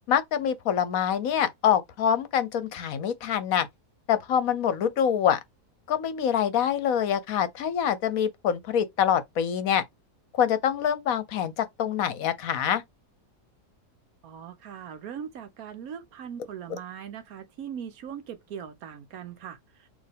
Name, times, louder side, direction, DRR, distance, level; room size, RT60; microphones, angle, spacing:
voice 1, 0.1-3.7 4.1-5.4 5.9-9.8 10.3-12.8 16.7-16.8, left 9 dB, 65° left, 1.1 m, -25 dB
voice 2, 14.2-19.6, right 8 dB, 70° right, 1.1 m, -40 dB
4.4 x 2.9 x 3.4 m
omnidirectional pair, 1.7 m